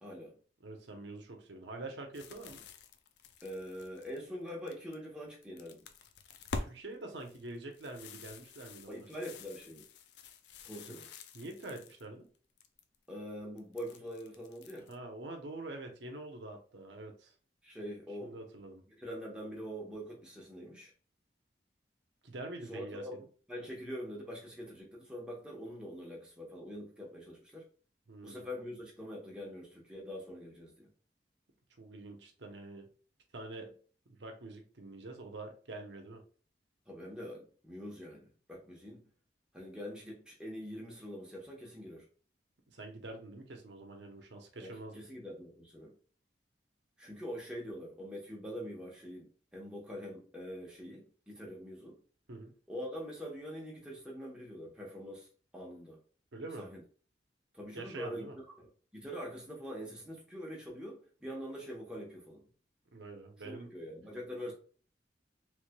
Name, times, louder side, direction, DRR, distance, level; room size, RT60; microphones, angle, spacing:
voice 1, 0.0-0.3 3.4-5.8 8.9-9.8 10.6-11.1 13.1-14.9 17.6-18.3 18.9-20.9 22.7-23.2 23.5-27.6 28.2-30.9 36.9-39.0 39.5-42.0 44.6-45.9 47.0-51.9 52.7-55.3 55.5-56.0 56.6-56.8 57.5-58.3 58.6-62.4 63.4-64.5, equal, 5° right, 0.9 m, -44 dB
voice 2, 0.6-2.6 6.6-9.1 10.9-11.0 11.3-12.3 14.9-17.3 18.2-18.8 22.2-23.3 28.1-28.5 31.8-32.9 33.3-33.7 34.1-36.2 42.7-45.0 52.3-52.5 56.3-56.7 57.7-58.4 62.9-63.7, right 2 dB, 85° right, 0.8 m, -46 dB
sound 1, 2.1-5.0 5.3-6.7 7.1-12.0 12.3-13.0 13.6-14.9, left 3 dB, 70° left, 0.4 m, -47 dB
3.3 x 3.2 x 2.2 m
head